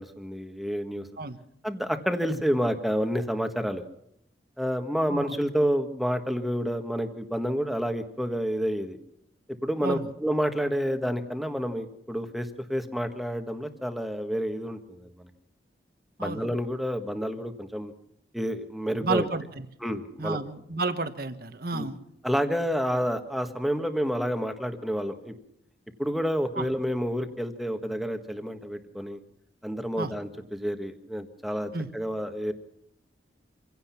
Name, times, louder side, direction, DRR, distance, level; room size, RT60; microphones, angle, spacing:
voice 1, 0.0-1.1 1.6-3.8 4.6-9.0 9.6-15.3 16.2-17.9 18.3-19.3 19.8-20.4 21.7-21.9 22.2-25.3 26.0-29.2 29.6-32.5, equal, ahead, 6 dB, 1.6 m, -29 dB
voice 2, 19.0-19.4 20.2-22.0 26.6-26.7 30.0-30.1 31.7-31.9, right 3 dB, 55° right, 9 dB, 1.4 m, -30 dB
26.5 x 16.5 x 5.9 m, 0.76 s
head